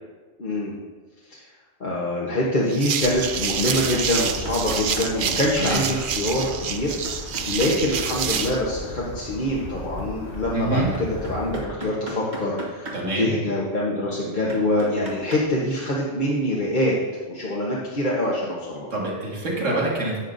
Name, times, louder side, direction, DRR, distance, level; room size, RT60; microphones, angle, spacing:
voice 1, 0.4-0.7 1.2-1.4 1.8-17.0 17.3-18.9 19.7-19.8, left 1 dB, 45° left, -5 dB, 1.2 m, -25 dB
sound 1, 2.7-8.6, right 7 dB, 55° right, 0.6 m, -27 dB
sound 2, 3.0-11.7, equal, 65° left, 1.6 m, -37 dB
sound 3, 3.6-5.1 7.0-7.7 10.9-13.0 13.8-13.9 14.5-15.5 18.7-18.8, right 1 dB, 40° right, 1.4 m, -36 dB
voice 2, 10.5-10.9 12.9-13.3 18.9-20.2, right 2 dB, 85° right, -3 dB, 2.2 m, -25 dB
11.0 x 8.0 x 2.6 m, 1.4 s
omnidirectional pair, 1.2 m